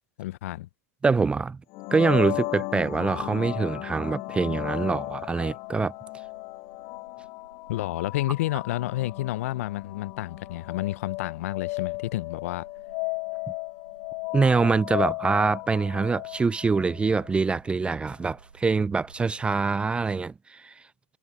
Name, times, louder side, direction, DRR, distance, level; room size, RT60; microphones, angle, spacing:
voice 1, 0.2-0.7 7.7-12.7, left 16 dB, 65° left, 0.6 m, -30 dB
voice 2, 1.0-1.6 1.9-5.9 14.3-20.7, right 4 dB, 15° right, 0.4 m, -24 dB
sound 1, 1.7-17.4, left 25 dB, 50° left, 1.6 m, -35 dB
sound 2, 2.4-19.6, right 6 dB, 90° right, 7.5 m, -58 dB
hypercardioid pair, 100°, 8 cm